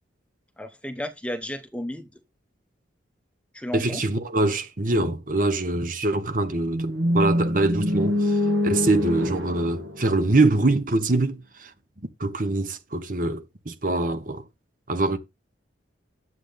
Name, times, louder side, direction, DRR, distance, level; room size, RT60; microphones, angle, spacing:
voice 1, 0.6-2.1 3.5-4.0, equal, 5° left, 1.0 m, -33 dB
voice 2, 3.7-8.4 8.6-11.7 12.2-14.4 14.9-15.2, right 2 dB, 45° right, 1.2 m, -24 dB
sound 1, 6.7-10.8, left 1 dB, 85° right, 1.8 m, -25 dB
9.8 x 7.8 x 3.5 m
head